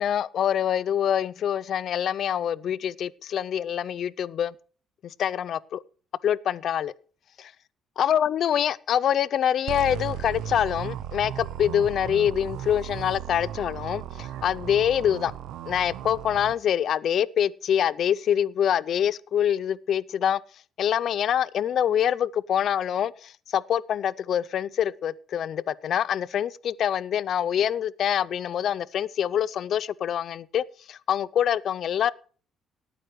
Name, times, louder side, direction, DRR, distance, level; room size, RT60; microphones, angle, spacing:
voice 1, 0.0-4.5 5.0-5.8 6.2-6.9 8.0-15.3 15.7-20.4 20.8-32.1, left 9 dB, 55° left, 0.4 m, -25 dB
sound 1, 9.7-16.5, right 11 dB, 85° right, 0.8 m, -36 dB
18.5 x 9.2 x 3.1 m
cardioid pair, 135°, 0 cm